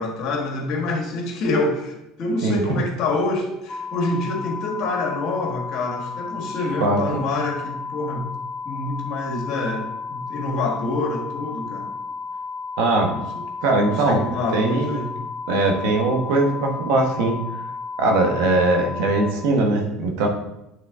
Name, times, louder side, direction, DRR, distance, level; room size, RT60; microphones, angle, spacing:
voice 1, 0.0-8.3 8.6-11.9 13.1-13.4 13.8-15.1, left 2 dB, 55° left, 1 dB, 1.6 m, -26 dB
sound 1, 3.7-19.3, left 4 dB, 20° left, 0.7 m, -33 dB
voice 2, 12.8-13.1 13.6-14.2 14.5-15.0 15.5-17.4 18.0-20.3, right 2 dB, 80° right, 2 dB, 1.2 m, -20 dB
8.3 x 3.8 x 3.6 m, 0.87 s
supercardioid pair, 110°, 0 cm